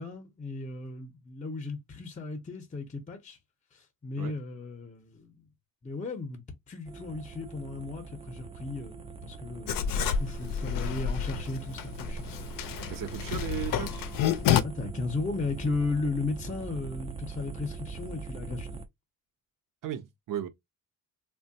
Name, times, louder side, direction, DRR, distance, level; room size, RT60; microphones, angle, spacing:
voice 1, 0.0-3.4 3.7-5.5 5.8-12.6 14.6-18.8, left 3 dB, 20° left, 0.6 m, -35 dB
sound 1, 6.9-18.9, right 5 dB, 15° right, 0.3 m, -42 dB
Writing, 9.7-14.6, left 8 dB, 70° left, 0.5 m, -29 dB
voice 2, 12.9-14.1 19.8-20.5, right 11 dB, 65° right, 0.6 m, -36 dB
3.2 x 2.2 x 2.6 m
cardioid pair, 125°, 35 cm